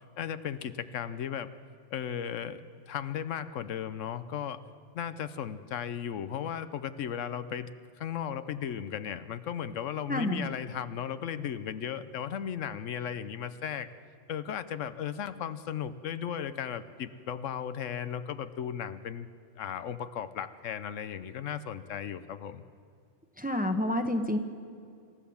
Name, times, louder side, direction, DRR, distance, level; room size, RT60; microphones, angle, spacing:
voice 1, 0.2-1.5 1.9-2.6 2.9-4.6 4.9-7.7 8.0-13.9 14.3-19.3 19.6-22.6, left 8 dB, 85° left, 12 dB, 1.1 m, -36 dB
voice 2, 10.1-10.5 23.4-24.4, left 1 dB, 10° right, 5 dB, 1.0 m, -29 dB
26.5 x 14.0 x 7.1 m, 2.3 s
omnidirectional pair, 1.3 m